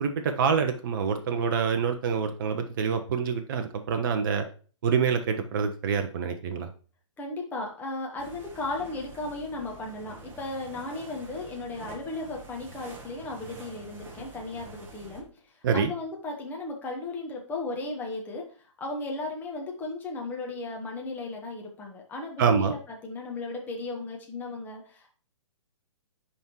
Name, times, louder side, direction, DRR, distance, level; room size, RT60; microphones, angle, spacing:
voice 1, 0.0-4.5 4.8-6.7 15.6-15.9 22.4-22.7, right 6 dB, 45° right, 6 dB, 0.6 m, -26 dB
voice 2, 7.2-15.3 15.5-18.4 18.8-25.1, left 2 dB, 10° left, 0 dB, 1.2 m, -35 dB
sound 1, 8.2-15.2, right 3 dB, 15° right, 1.1 m, -47 dB
10.5 x 3.7 x 3.0 m, 0.39 s
figure-of-eight pair, 125°, 16 cm